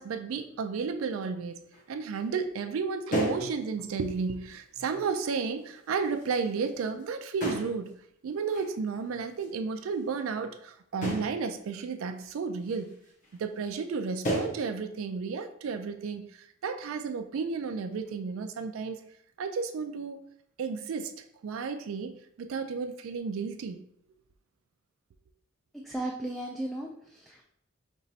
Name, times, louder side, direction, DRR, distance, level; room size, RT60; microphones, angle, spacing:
voice 1, 0.0-7.9 8.2-12.9 13.3-19.0 19.4-20.2 20.6-21.1 21.4-23.8, right 5 dB, 75° right, 0.4 m, -33 dB
sound 1, 1.7-1.8 2.1-2.2 2.7-2.8 3.1-3.5 4.0-4.1 4.9-5.3 5.9-7.0 7.4-7.9 8.5-8.7 9.4-9.5 11.0-11.4 12.2-12.3 12.7-12.9 13.2-13.4 13.7-14.0 14.2-14.6, right 1 dB, 40° left, 1.0 m, -33 dB
voice 2, 25.8-27.4, right 1 dB, ahead, 0.3 m, -35 dB
5.3 x 3.0 x 2.7 m
head